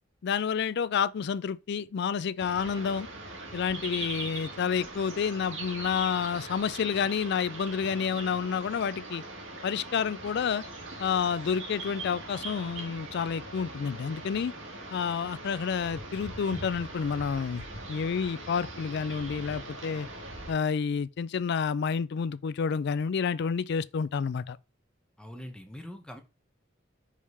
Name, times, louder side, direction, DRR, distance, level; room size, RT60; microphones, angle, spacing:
voice 1, 0.2-3.1 3.5-9.2 9.6-10.6 11.0-14.5 14.9-20.1 20.5-24.6, left 6 dB, 60° left, 0.4 m, -29 dB
sound 1, 2.4-20.5, right 2 dB, 70° right, 1.6 m, -41 dB
voice 2, 25.2-26.2, equal, 5° left, 1.0 m, -43 dB
4.9 x 3.5 x 5.5 m
head